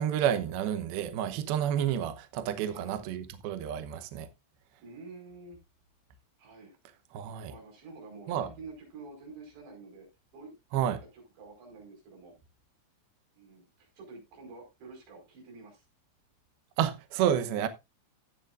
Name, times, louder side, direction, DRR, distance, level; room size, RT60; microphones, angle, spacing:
voice 1, 0.0-4.3 7.1-7.5 8.3-8.5 10.7-11.0 16.8-17.7, right 10 dB, 85° right, 2.2 m, -30 dB
voice 2, 4.8-5.6 6.4-6.8 7.5-10.1 10.3-12.4 13.3-15.9, right 3 dB, 60° right, 7.1 m, -49 dB
14.5 x 8.7 x 2.5 m
omnidirectional pair, 5.9 m